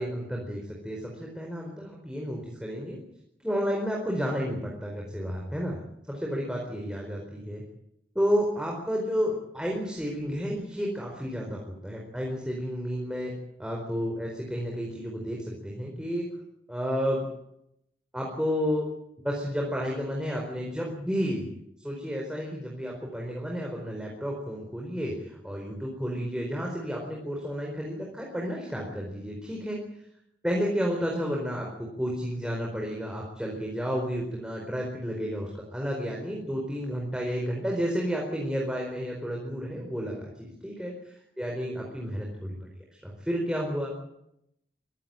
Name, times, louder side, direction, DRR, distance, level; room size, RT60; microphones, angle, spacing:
voice 1, 0.0-3.0 3.4-5.8 6.1-7.6 8.1-13.3 13.6-16.3 16.7-17.3 18.1-18.9 19.2-21.5 21.8-29.8 30.4-40.9 41.4-42.5 43.0-43.9, equal, 5° right, -1 dB, 4.5 m, -31 dB
24.0 x 16.5 x 9.0 m, 0.80 s
head